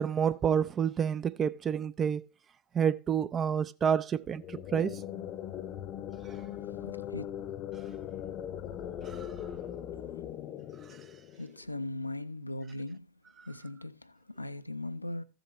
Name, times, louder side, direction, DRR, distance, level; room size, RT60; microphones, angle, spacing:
voice 1, 0.0-2.2 2.7-5.0 9.1-9.2, right 7 dB, 25° right, 0.4 m, -29 dB
sound 1, 4.2-11.8, left 10 dB, 35° left, 0.8 m, -40 dB
voice 2, 6.2-7.3 10.1-10.6 11.0-11.1 11.4-13.1 13.4-15.2, left 2 dB, 85° left, 0.5 m, -40 dB
14.5 x 7.6 x 3.0 m
figure-of-eight pair, 90°, 0 cm